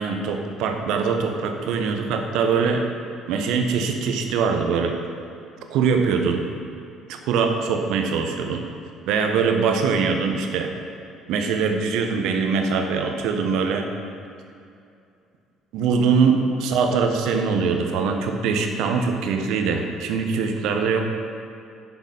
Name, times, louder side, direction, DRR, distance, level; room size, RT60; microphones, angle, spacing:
voice 1, 0.0-2.8 3.3-5.0 5.7-6.4 7.1-8.6 9.1-10.7 11.3-13.9 15.7-21.1, right 5 dB, 65° right, 4 dB, 1.0 m, -22 dB
10.5 x 5.9 x 5.5 m, 2.5 s
figure-of-eight pair, 55°, 0 cm